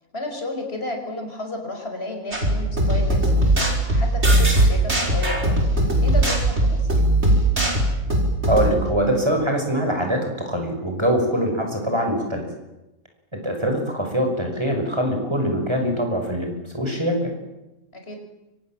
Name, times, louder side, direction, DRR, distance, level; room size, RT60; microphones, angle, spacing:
voice 1, 0.1-6.9 17.9-18.2, left 2 dB, 45° left, 3 dB, 5.6 m, -32 dB
sound 1, 2.3-8.7, right 1 dB, 50° right, 5.8 m, -19 dB
voice 2, 8.5-12.5 13.3-17.3, equal, 20° right, 3 dB, 5.8 m, -23 dB
29.0 x 25.5 x 7.6 m, 0.97 s
omnidirectional pair, 1.5 m